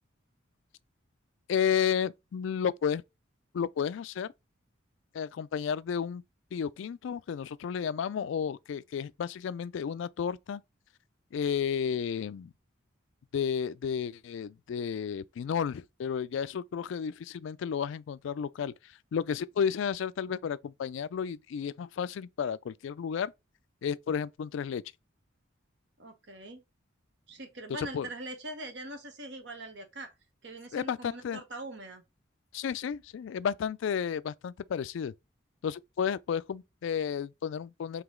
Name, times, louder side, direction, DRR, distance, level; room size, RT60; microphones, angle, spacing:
voice 1, 1.5-3.0 3.5-4.3 5.1-6.2 6.5-10.6 11.3-12.5 13.3-18.7 19.1-23.3 23.8-24.8 27.8-28.1 30.7-31.4 32.5-35.1 35.6-38.0, left 7 dB, 70° left, 0.3 m, -32 dB
voice 2, 26.0-26.6 27.3-30.1 30.4-32.0, right 2 dB, 60° right, 1.1 m, -42 dB
4.9 x 2.9 x 3.6 m
head